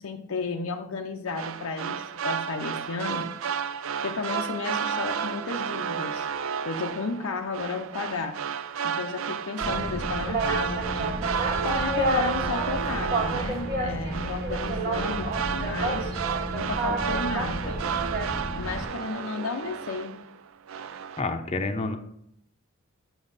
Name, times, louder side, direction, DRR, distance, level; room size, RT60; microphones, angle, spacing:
voice 1, 0.0-3.3 4.0-6.3 6.7-8.4 8.8-11.3 11.6-16.1 16.5-17.8 18.6-20.2, left 4 dB, 85° left, 3 dB, 0.6 m, -33 dB
sound 1, 1.3-20.4 20.7-21.2, right 7 dB, 70° right, 0.4 m, -32 dB
Boat Water vehicle, 9.6-18.8, right 1 dB, 50° right, 1.3 m, -30 dB
voice 2, 21.2-22.0, left 3 dB, 30° left, 5 dB, 0.6 m, -28 dB
7.1 x 6.0 x 4.0 m, 0.73 s
head